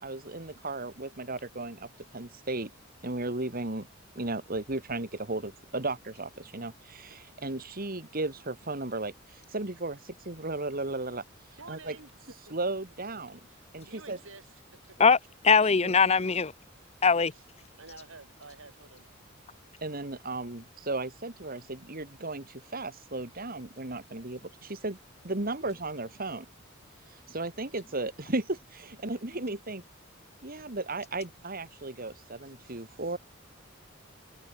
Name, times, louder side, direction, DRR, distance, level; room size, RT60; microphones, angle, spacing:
voice 1, 0.0-2.7 3.0-3.9 4.2-11.2 11.7-12.0 12.5-13.4 13.7-14.2 15.8-15.9 19.8-25.0 25.2-26.5 27.1-29.8 30.4-33.2, right 2 dB, 45° right, 2.2 m, -35 dB
voice 2, 11.6-12.1 12.5-12.6 13.5-14.6 15.1-15.2 17.1-17.4 17.8-19.1, right 3 dB, 75° right, 6.9 m, -50 dB
voice 3, 15.4-16.5 17.0-17.3, left 5 dB, 30° left, 0.8 m, -21 dB
head